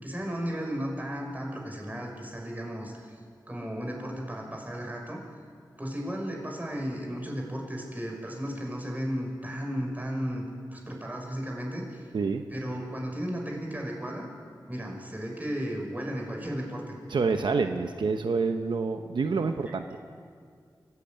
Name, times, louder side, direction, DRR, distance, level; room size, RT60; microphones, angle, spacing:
voice 1, 0.0-3.2 3.5-5.2 5.8-12.1 12.5-14.3 14.7-17.0, equal, 20° right, 0 dB, 6.1 m, -34 dB
voice 2, 17.1-19.8, right 4 dB, 85° right, 6 dB, 1.0 m, -27 dB
22.5 x 16.0 x 9.4 m, 2.1 s
cardioid pair, 55°, 8 cm